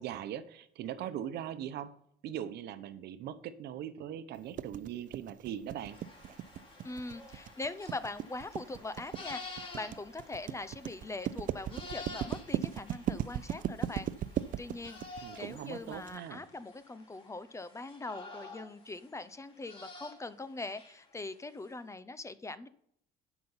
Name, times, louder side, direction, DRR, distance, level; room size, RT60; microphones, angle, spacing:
voice 1, 0.0-2.0 2.2-6.0 15.2-16.4, right 10 dB, 75° right, 12 dB, 0.9 m, -40 dB
sound 1, 4.6-16.1, right 11 dB, 55° right, 0.5 m, -37 dB
sound 2, 5.9-21.0, left 3 dB, 30° left, 3.0 m, -50 dB
voice 2, 6.8-14.1 14.6-22.7, left 2 dB, 15° left, 14 dB, 0.7 m, -42 dB
12.0 x 6.1 x 5.6 m, 0.68 s
cardioid pair, 110°, 17 cm